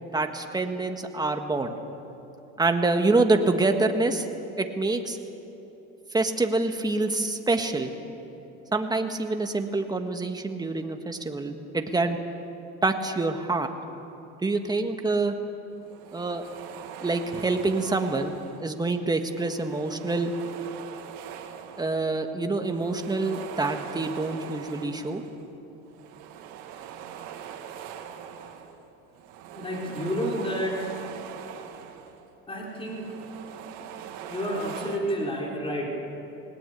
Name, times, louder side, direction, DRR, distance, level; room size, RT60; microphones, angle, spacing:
voice 1, 0.1-1.8 2.6-4.3 4.6-5.2 6.1-7.9 8.7-12.2 12.8-13.7 14.4-15.3 16.1-16.4 17.0-18.3 18.6-20.3 21.8-25.2, right 3 dB, 15° right, 5 dB, 1.6 m, -26 dB
sound 1, 15.1-15.3 15.7-18.8 19.2-22.2 22.5-25.5 25.9-32.2 32.6-35.0, right 8 dB, 80° right, 1.9 m, -42 dB
voice 2, 29.5-30.8 32.5-33.2 34.3-36.0, equal, 20° left, -2 dB, 4.7 m, -30 dB
20.0 x 19.0 x 8.4 m, 3.0 s
cardioid pair, 115°, 29 cm